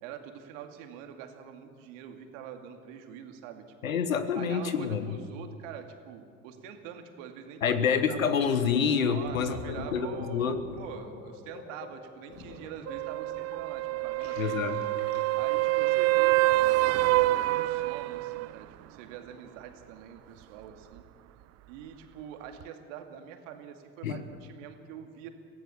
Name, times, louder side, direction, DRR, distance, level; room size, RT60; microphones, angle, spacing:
voice 1, 0.0-4.0 4.3-7.8 8.1-8.3 9.1-14.6 15.4-21.0 21.7-25.3, right 8 dB, 70° right, 5 dB, 2.4 m, -45 dB
voice 2, 3.8-5.1 7.6-10.6 14.4-14.8 24.0-24.2, left 7 dB, 90° left, 11 dB, 1.3 m, -27 dB
Gurgling, 8.5-8.7 9.1-15.6, left 2 dB, 75° left, 4.3 m, -46 dB
sound 1, 12.9-18.5 22.6-22.7, right 18 dB, 40° right, 0.5 m, -26 dB
23.5 x 16.0 x 7.1 m, 2.3 s
hypercardioid pair, 75°, 39 cm